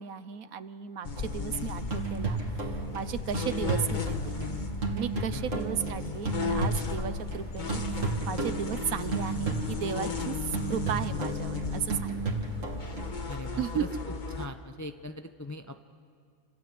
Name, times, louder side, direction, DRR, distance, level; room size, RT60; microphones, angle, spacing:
voice 1, 0.0-4.3 4.9-10.4 10.7-12.2 13.6-13.8, right 8 dB, 75° right, 13 dB, 1.3 m, -35 dB
sound 1, 1.0-14.5, left 4 dB, 35° left, 1.3 m, -35 dB
sound 2, 1.2-7.4 7.7-13.1, right 4 dB, 60° right, 2.5 m, -34 dB
voice 2, 13.3-13.9 14.4-15.8, left 1 dB, 20° left, 7 dB, 0.5 m, -40 dB
28.0 x 26.5 x 7.8 m, 2.2 s
omnidirectional pair, 1.5 m